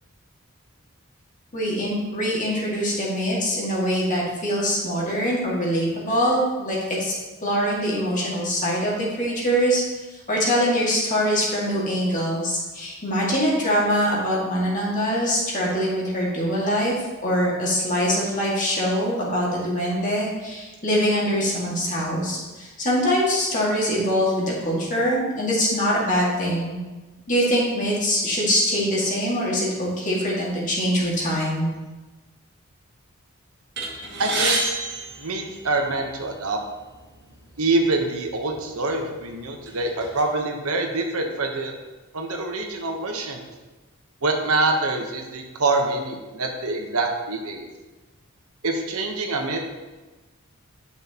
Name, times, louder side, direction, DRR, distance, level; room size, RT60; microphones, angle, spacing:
voice 1, 1.5-7.1 7.4-9.8 10.1-16.9 17.2-26.8 27.3-31.7, equal, 35° left, -4 dB, 2.0 m, -23 dB
sound 1, 33.8-36.1 36.9-37.1 37.4-37.6 38.4-38.6 39.1-40.2, right 3 dB, 50° right, 2.0 m, -28 dB
voice 2, 34.2-34.6 35.2-36.6 37.6-41.7 42.1-43.4 44.2-47.7 48.6-49.6, right 2 dB, 85° right, 3 dB, 1.1 m, -25 dB
10.5 x 6.3 x 3.0 m, 1.2 s
head